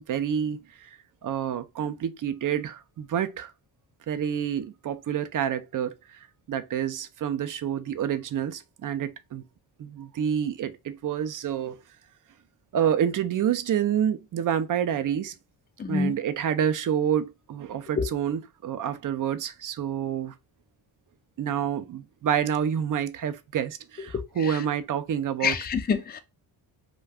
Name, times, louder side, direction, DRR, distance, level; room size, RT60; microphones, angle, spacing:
voice 1, 0.0-3.5 4.1-9.4 9.8-11.8 12.7-15.3 15.9-20.3 21.4-25.6, right 9 dB, 45° right, 0.4 m, -28 dB
voice 2, 15.8-16.1 18.0-18.1 25.4-26.2, left 5 dB, 20° left, 0.4 m, -26 dB
2.4 x 2.2 x 3.3 m
cardioid pair, 60°, 47 cm